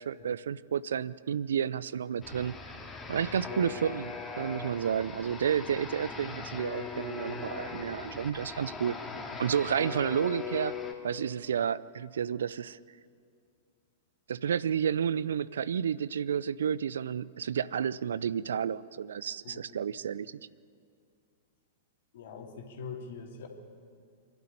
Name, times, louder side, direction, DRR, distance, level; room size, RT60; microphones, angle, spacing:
voice 1, 0.0-2.7 3.1-9.0 9.4-10.8 11.0-12.8 14.3-20.4, right 8 dB, 70° right, 19 dB, 0.5 m, -31 dB
sound 1, 2.2-10.9, left 5 dB, 15° left, 2.7 m, -40 dB
voice 2, 9.0-9.4 9.8-10.1 19.4-19.6 22.1-23.5, left 5 dB, 60° left, 1 dB, 3.1 m, -44 dB
25.0 x 11.5 x 10.0 m, 2.3 s
figure-of-eight pair, 105°, 0 cm